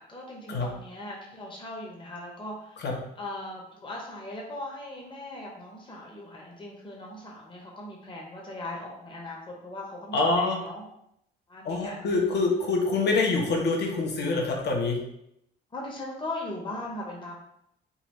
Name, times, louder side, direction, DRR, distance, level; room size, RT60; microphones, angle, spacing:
voice 1, 0.0-10.8 11.5-12.0 15.7-17.4, left 1 dB, 25° left, -2 dB, 0.9 m, -39 dB
voice 2, 10.1-10.6 11.6-15.0, left 3 dB, 60° left, 0 dB, 0.9 m, -25 dB
3.9 x 2.4 x 3.0 m, 0.78 s
cardioid pair, 90°, 20 cm